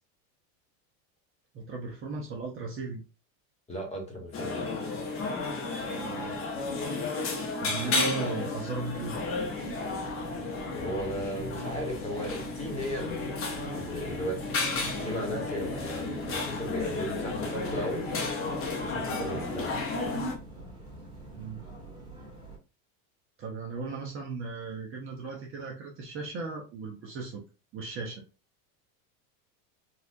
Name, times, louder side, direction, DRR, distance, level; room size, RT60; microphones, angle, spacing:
voice 1, 1.5-3.0 5.8-6.4 7.6-9.2 21.3-21.6 23.4-27.4 27.7-28.2, right 4 dB, 30° right, -1 dB, 0.7 m, -36 dB
voice 2, 3.7-4.6 10.7-13.4 13.7-14.6 15.0-18.1 18.8-19.9, equal, 15° left, 0 dB, 1.2 m, -36 dB
sound 1, 4.3-20.3, left 3 dB, 30° left, 0.7 m, -33 dB
sound 2, 8.8-22.6, right 2 dB, 10° right, 1.5 m, -46 dB
4.1 x 2.4 x 2.5 m, 0.32 s
supercardioid pair, 135°, 44 cm